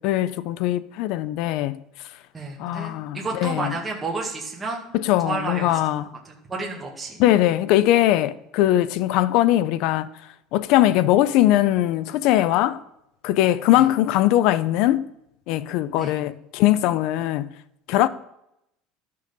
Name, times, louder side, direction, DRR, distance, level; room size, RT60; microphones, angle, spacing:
voice 1, 0.0-1.8 2.6-3.7 4.9-6.1 7.2-10.1 10.5-12.8 13.2-15.1 15.5-17.5 17.9-18.1, left 14 dB, 50° left, 0.4 m, -20 dB
voice 2, 2.3-4.9 5.2-5.8 6.3-7.2 13.7-13.9 16.0-16.2, right 3 dB, 10° right, 1.9 m, -31 dB
12.0 x 6.5 x 5.2 m
cardioid pair, 180°, 0 cm